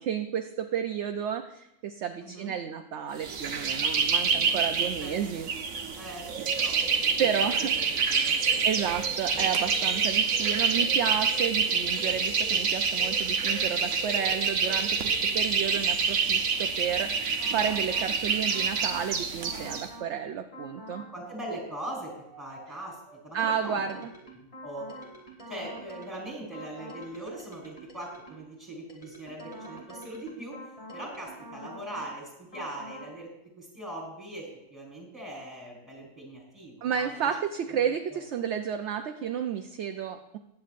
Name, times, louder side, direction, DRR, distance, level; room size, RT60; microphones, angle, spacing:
voice 1, 0.0-5.5 7.2-7.7 8.6-21.0 23.3-24.1 36.8-40.4, right 8 dB, 65° right, 6 dB, 0.8 m, -31 dB
voice 2, 2.2-2.5 4.3-4.6 5.0-5.2 6.0-6.8 7.2-7.5 8.1-8.9 21.1-23.0 23.2-23.8 24.3-24.9 25.5-30.6 30.9-33.3 33.6-37.3 38.1-38.2, right 1 dB, ahead, -2 dB, 4.3 m, -41 dB
sound 1, 3.2-19.9, right 5 dB, 80° right, 1.3 m, -27 dB
sound 2, 17.4-18.1 18.5-19.1 19.4-20.1 20.5-21.1 21.4-28.5 28.9-32.1 32.5-33.1, right 1 dB, 25° left, 2.6 m, -46 dB
20.5 x 8.3 x 2.5 m, 0.86 s
omnidirectional pair, 1.4 m